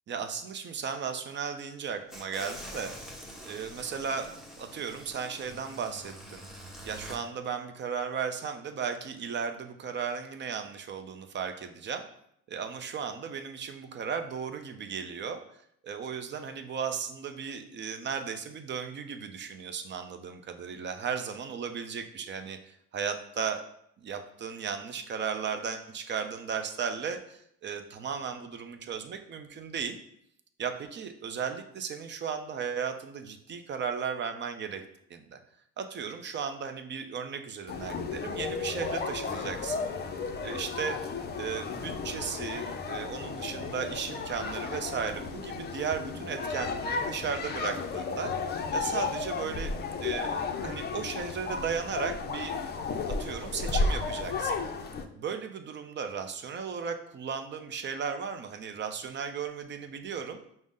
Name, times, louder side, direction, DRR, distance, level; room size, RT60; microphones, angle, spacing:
voice 1, 0.1-2.9 3.5-4.3 4.6-6.4 6.8-12.0 12.5-15.4 15.8-23.6 24.0-30.0 30.6-34.8 35.1-35.4 35.8-39.9 40.4-48.3 48.7-52.8 53.1-54.6 55.2-60.4, right 6 dB, 40° right, 7 dB, 0.5 m, -35 dB
sound 1, 2.1-7.2, equal, ahead, 1.1 m, -45 dB
sound 2, 37.7-55.0, left 4 dB, 35° left, 0.5 m, -33 dB
5.1 x 2.1 x 3.6 m, 0.72 s
supercardioid pair, 90°, 29 cm